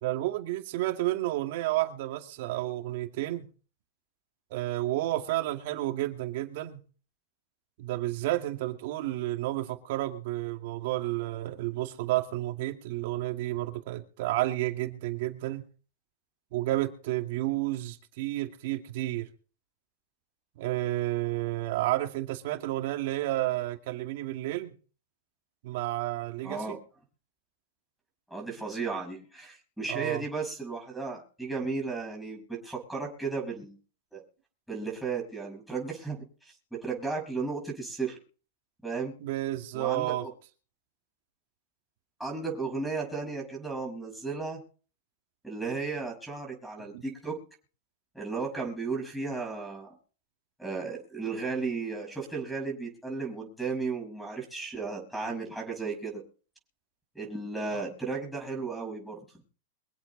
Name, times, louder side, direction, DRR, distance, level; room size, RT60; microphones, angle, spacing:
voice 1, 0.0-3.5 4.5-6.8 7.8-15.6 16.5-19.3 20.6-24.7 25.6-26.8 29.9-30.2 39.2-40.3 46.9-47.0 57.7-57.8, right 16 dB, 60° right, 2.2 m, -31 dB
voice 2, 26.4-26.8 28.3-33.8 34.1-34.2 34.7-38.2 38.8-39.1 39.7-40.3 42.2-44.6 45.4-47.4 48.1-49.9 50.6-56.2 57.1-59.2, right 4 dB, ahead, 5.4 m, -34 dB
24.0 x 8.1 x 4.1 m
hypercardioid pair, 120°, 0 cm